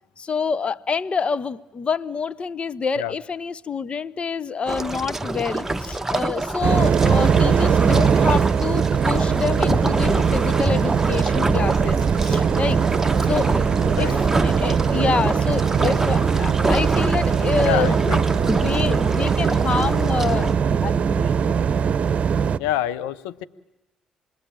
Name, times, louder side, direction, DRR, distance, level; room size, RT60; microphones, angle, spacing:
voice 1, 0.2-12.8 13.2-13.5 14.0-18.0 18.4-21.3, left 5 dB, 40° left, 1.0 m, -27 dB
sound 1, 4.7-20.5, right 2 dB, 15° right, 1.3 m, -26 dB
sound 2, 6.6-22.6, right 6 dB, 50° right, 1.0 m, -21 dB
voice 2, 17.6-18.2 22.6-23.4, left 13 dB, 85° left, 0.9 m, -26 dB
27.0 x 21.0 x 8.9 m
hypercardioid pair, 55°, 3 cm